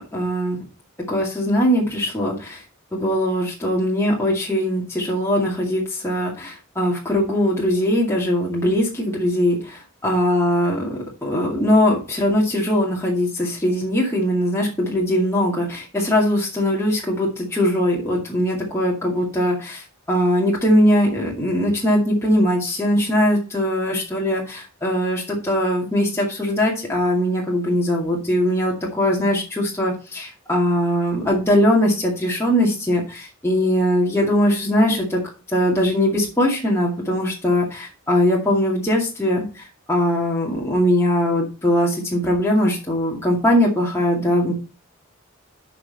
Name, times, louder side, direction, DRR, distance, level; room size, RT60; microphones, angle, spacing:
voice 1, 0.1-0.6 1.1-2.6 2.9-35.2 35.5-44.5, equal, 15° left, -3 dB, 2.2 m, -21 dB
11.5 x 5.8 x 4.1 m, 0.32 s
head